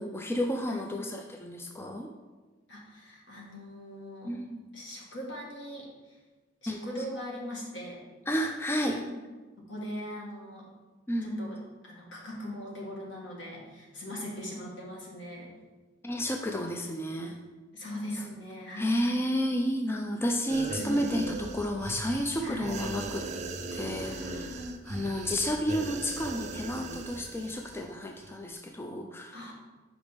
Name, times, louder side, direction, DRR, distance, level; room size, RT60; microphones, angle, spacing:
voice 1, 0.0-2.1 4.2-4.6 6.7-6.8 8.3-9.0 11.1-11.6 16.0-17.4 18.8-23.3 23.7-24.6 24.9-29.5, equal, 15° left, 3 dB, 0.4 m, -31 dB
voice 2, 2.7-4.3 4.7-5.9 6.6-8.0 8.9-9.1 9.7-10.7 11.2-11.6 11.8-15.5 17.7-19.0 20.7-21.1 22.4-22.7 23.7-24.8 29.3-29.5, equal, 70° left, -3 dB, 1.8 m, -40 dB
sound 1, 20.5-27.8 28.2-28.3, right 3 dB, 40° right, 0.5 m, -39 dB
5.2 x 5.0 x 5.2 m, 1.2 s
head